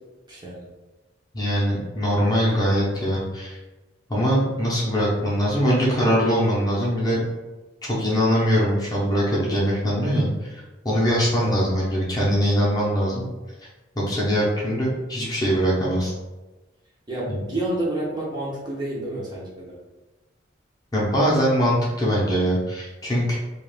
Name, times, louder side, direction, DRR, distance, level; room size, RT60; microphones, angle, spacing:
voice 1, 0.3-0.7 11.4-11.6 17.1-19.8, right 1 dB, 25° right, -5 dB, 0.6 m, -29 dB
voice 2, 1.3-3.6 4.1-7.2 7.9-13.2 13.9-16.1 20.9-23.4, equal, 20° left, -5 dB, 0.6 m, -22 dB
2.4 x 2.3 x 3.2 m, 1.1 s
head